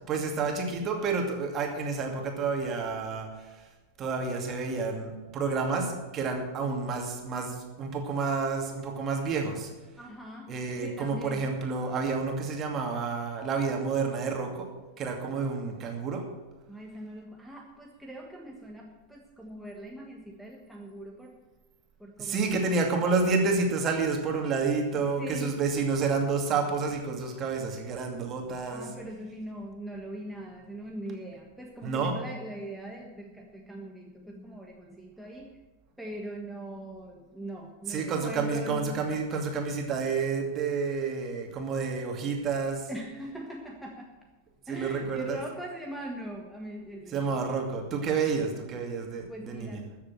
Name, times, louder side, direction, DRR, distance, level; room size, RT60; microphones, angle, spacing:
voice 1, 0.0-3.6 4.0-9.7 10.5-14.7 15.0-16.3 22.2-28.9 31.8-32.1 37.9-42.9 44.7-45.4 47.1-49.8, right 4 dB, 30° right, 2 dB, 2.4 m, -29 dB
voice 2, 9.9-10.5 10.8-11.5 16.7-21.4 22.0-22.7 24.9-25.6 28.7-35.6 36.0-39.0 42.9-44.1 44.7-47.4 49.3-49.9, right 1 dB, ahead, 1 dB, 1.4 m, -41 dB
14.0 x 7.3 x 7.6 m, 1.2 s
figure-of-eight pair, 90°, 0 cm